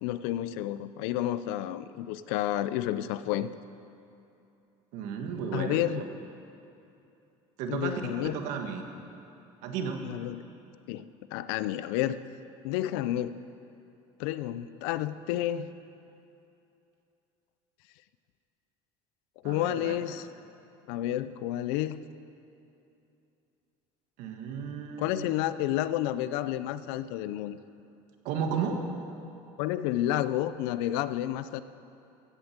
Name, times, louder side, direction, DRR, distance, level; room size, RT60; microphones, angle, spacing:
voice 1, 0.0-3.5 5.5-6.1 7.7-8.4 10.0-10.4 10.9-12.2 12.6-13.4 14.2-15.7 19.4-20.3 20.9-22.0 25.0-27.6 29.6-31.6, left 13 dB, 85° left, 14 dB, 0.6 m, -30 dB
voice 2, 4.9-5.8 7.6-8.8 9.6-10.0 19.4-20.0 24.2-25.3 28.2-28.8, right 6 dB, 65° right, 4 dB, 1.6 m, -33 dB
15.5 x 8.8 x 7.4 m, 2.7 s
cardioid pair, 165°, 13 cm